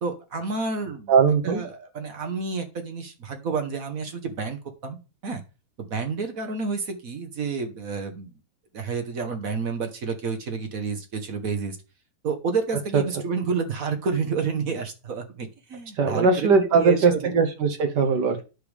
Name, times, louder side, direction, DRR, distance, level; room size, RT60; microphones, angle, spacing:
voice 1, 0.0-1.1 1.4-5.0 5.2-5.4 5.8-8.3 8.7-11.8 12.2-17.3, right 5 dB, 50° right, 6 dB, 1.4 m, -30 dB
voice 2, 1.1-1.6 12.9-13.0 16.0-18.4, right 5 dB, 70° right, 6 dB, 1.5 m, -20 dB
9.7 x 6.7 x 3.3 m, 0.31 s
omnidirectional pair, 2.0 m